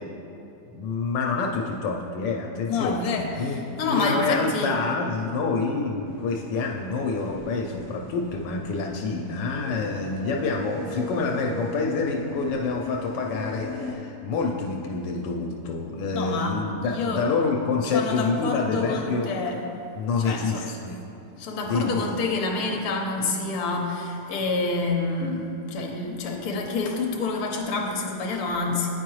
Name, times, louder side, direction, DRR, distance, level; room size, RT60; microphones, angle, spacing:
voice 1, 0.7-19.3 20.0-21.0 21.7-22.0, left 4 dB, 80° left, 1 dB, 1.2 m, -27 dB
voice 2, 2.7-4.7 16.1-17.3 17.8-19.6 20.2-20.8 21.4-28.9, left 3 dB, 65° left, 1 dB, 1.2 m, -28 dB
sound 1, 6.1-13.9, equal, 20° left, 0.6 m, -38 dB
9.6 x 4.6 x 3.0 m, 2.7 s
omnidirectional pair, 1.9 m